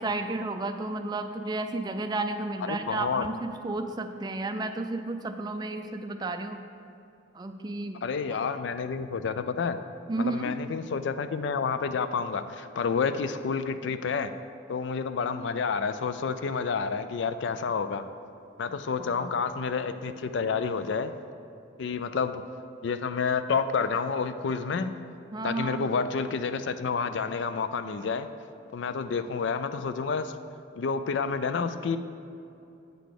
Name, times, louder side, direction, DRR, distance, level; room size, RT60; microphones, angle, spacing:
voice 1, 0.0-6.6 7.3-8.0 10.1-10.6 19.0-19.4 25.3-25.8, right 2 dB, 20° right, 6 dB, 0.3 m, -32 dB
voice 2, 2.6-3.3 8.0-9.8 10.2-14.3 14.7-18.0 18.6-21.1 21.8-22.4 22.8-24.9 25.4-28.3 28.7-30.3 30.8-32.0, left 5 dB, 65° left, 11 dB, 0.4 m, -29 dB
8.2 x 4.0 x 6.6 m, 2.7 s
head